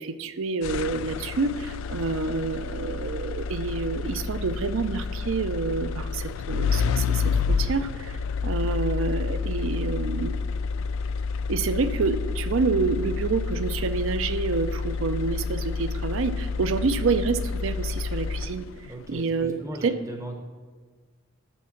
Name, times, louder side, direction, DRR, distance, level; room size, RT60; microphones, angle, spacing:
voice 1, 0.0-10.4 11.5-18.7 19.1-19.9, right 4 dB, 60° right, 12 dB, 0.5 m, -28 dB
sound 1, 0.6-18.9, left 5 dB, 60° left, 0.3 m, -29 dB
voice 2, 18.9-20.4, right 1 dB, 15° right, 4 dB, 0.7 m, -38 dB
7.2 x 7.1 x 5.8 m, 1.5 s
head